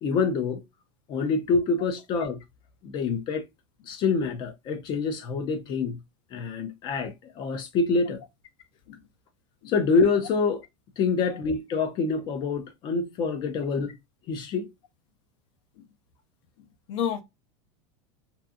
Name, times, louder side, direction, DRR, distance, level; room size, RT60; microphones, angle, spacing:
voice 1, 0.0-0.6 1.1-2.4 2.8-3.4 3.9-6.0 6.3-8.2 9.7-10.6 11.0-14.0 14.3-14.7, left 4 dB, 30° left, 0.5 m, -26 dB
voice 2, 16.6-17.2, left 9 dB, 65° left, 0.9 m, -32 dB
2.7 x 2.5 x 2.3 m
supercardioid pair, 160°, 16 cm